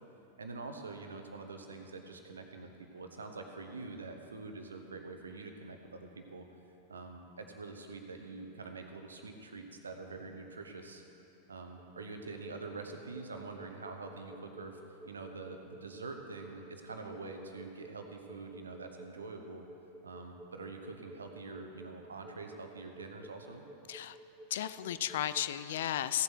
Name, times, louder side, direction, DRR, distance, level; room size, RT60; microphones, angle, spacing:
voice 1, 0.4-6.4 6.9-11.0 11.5-14.8 15.0-19.6 20.0-23.6, right 3 dB, 75° right, 5 dB, 1.0 m, -45 dB
sound 1, 11.8-25.4, right 1 dB, 5° right, 0.6 m, -53 dB
voice 2, 24.5-26.2, left 11 dB, 60° left, 13 dB, 0.4 m, -34 dB
16.0 x 7.7 x 4.6 m, 2.9 s
figure-of-eight pair, 90°, 0 cm